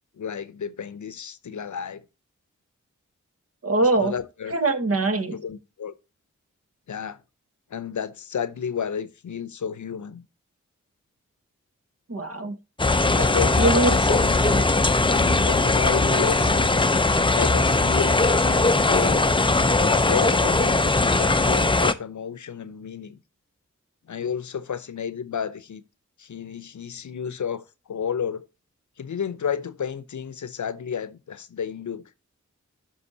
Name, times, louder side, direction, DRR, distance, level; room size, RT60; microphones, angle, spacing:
voice 1, 0.2-2.0 4.0-4.5 5.3-5.9 6.9-7.2 7.7-10.3 13.1-16.9 17.3-19.3 19.8-23.2 24.1-25.8 26.2-28.5 29.0-32.1, left 7 dB, 70° left, 0.7 m, -31 dB
voice 2, 3.6-4.1 4.5-5.3 12.1-12.5 13.6-13.9 14.5-14.6, right 2 dB, 50° right, 1.4 m, -22 dB
sound 1, 12.8-21.9, left 3 dB, 15° left, 0.5 m, -20 dB
13.5 x 5.3 x 2.7 m
cardioid pair, 40°, 31 cm